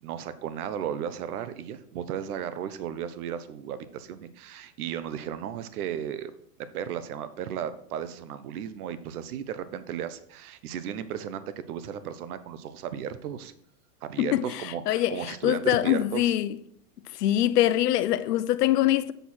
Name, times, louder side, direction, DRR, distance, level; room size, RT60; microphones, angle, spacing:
voice 1, 0.0-6.3 6.7-13.5 14.0-16.3, right 9 dB, 65° right, 0.9 m, -35 dB
voice 2, 14.2-16.5 17.2-19.1, left 13 dB, 70° left, 0.8 m, -24 dB
8.0 x 6.3 x 4.3 m
supercardioid pair, 175°, 49 cm